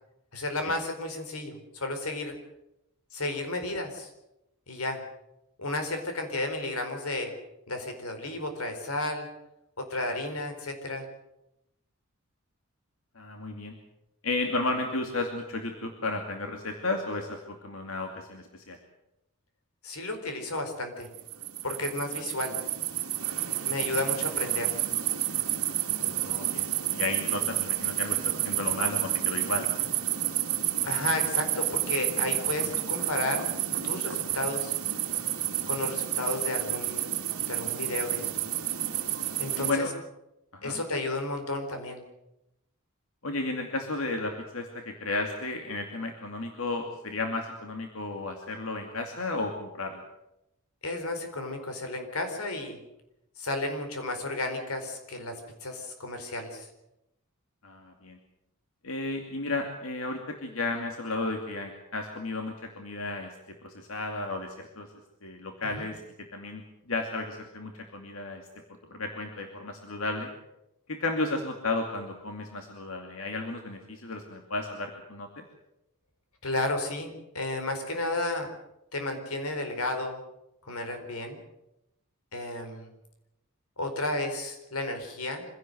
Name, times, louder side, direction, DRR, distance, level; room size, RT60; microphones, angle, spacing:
voice 1, 0.3-2.4 3.1-4.1 4.7-5.0 5.6-7.3 7.7-9.3 9.8-11.1 19.8-21.1 21.6-22.6 23.6-24.7 30.8-33.5 33.8-34.7 35.7-37.1 37.5-38.3 39.4-39.9 40.6-42.0 50.8-52.8 53.4-56.7 65.6-65.9 76.4-78.5 78.9-80.2 80.6-81.4 82.3-82.9 83.8-85.5, left 2 dB, 90° left, 6 dB, 4.5 m, -32 dB
voice 2, 13.2-13.7 14.2-18.8 26.2-29.8 39.6-39.9 40.5-40.8 43.2-50.0 57.6-58.2 58.8-63.3 63.6-64.9 65.2-66.0 66.3-66.6 66.9-68.4 68.9-70.3 70.9-75.4, left 2 dB, 65° left, 3 dB, 2.5 m, -33 dB
sound 1, 21.0-39.7, right 12 dB, 75° right, 1.9 m, -30 dB
25.0 x 16.5 x 8.0 m, 0.87 s
head